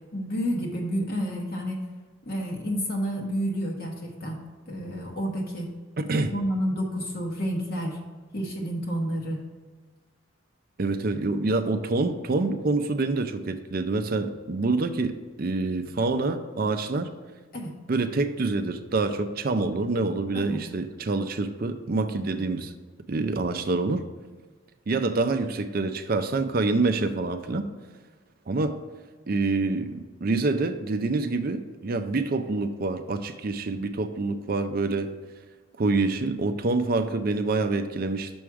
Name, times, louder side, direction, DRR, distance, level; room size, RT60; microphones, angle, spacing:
voice 1, 0.1-1.8 2.3-4.4 4.7-5.7 6.3-8.0 8.3-9.4 17.5-17.7 20.3-20.7 22.4-22.5, equal, 45° left, -1 dB, 1.0 m, -30 dB
voice 2, 6.0-6.3 10.8-17.1 17.9-22.7 23.1-24.0 24.9-27.7 28.5-28.8 29.3-35.1 35.8-38.3, right 3 dB, 45° right, 8 dB, 0.4 m, -26 dB
6.1 x 4.9 x 4.6 m, 1.4 s
head